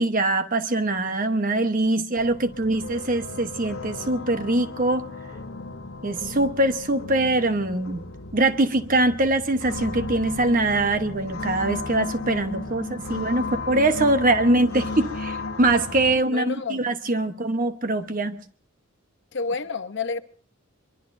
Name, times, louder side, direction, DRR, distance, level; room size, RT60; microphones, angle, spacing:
voice 1, 0.0-5.1 6.0-8.0 8.3-18.4, right 2 dB, 40° right, 1.1 m, -23 dB
sound 1, 2.2-16.2, left 3 dB, 90° left, 1.3 m, -35 dB
voice 2, 16.3-16.8 19.3-20.2, left 4 dB, 60° left, 0.9 m, -29 dB
23.5 x 23.5 x 2.7 m
head